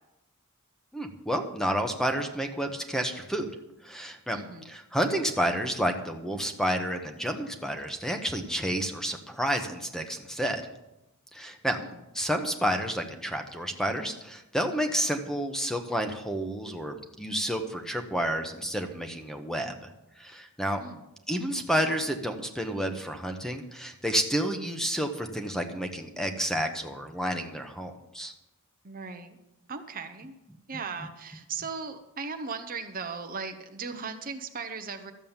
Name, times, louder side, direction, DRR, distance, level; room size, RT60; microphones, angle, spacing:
voice 1, 0.9-3.5 3.8-4.4 4.6-10.6 11.3-11.8 12.1-19.9 20.2-20.8 21.3-28.3, equal, ahead, 5 dB, 1.0 m, -30 dB
voice 2, 4.3-4.7 11.8-12.0 20.8-21.0 28.8-29.4 29.7-30.4 30.7-35.1, right 5 dB, 40° right, 7 dB, 0.8 m, -37 dB
12.5 x 7.4 x 7.2 m, 0.92 s
head